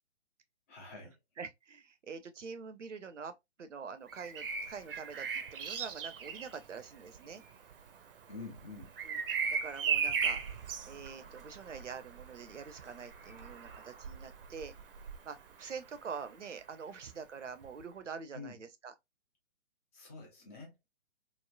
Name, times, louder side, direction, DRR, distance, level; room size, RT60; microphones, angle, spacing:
voice 1, 0.7-1.2 8.3-8.9 18.3-18.6 19.9-20.8, left 3 dB, 15° left, 0.4 m, -47 dB
voice 2, 1.4-3.3 3.6-7.4 9.0-9.2 9.5-10.4 10.9-14.7 15.2-18.9, right 5 dB, 90° right, 0.6 m, -45 dB
Bird vocalization bird call bird song, 4.1-15.9 17.6-17.8, right 6 dB, 50° right, 0.5 m, -38 dB
3.1 x 2.0 x 2.2 m
figure-of-eight pair, 130°, 36 cm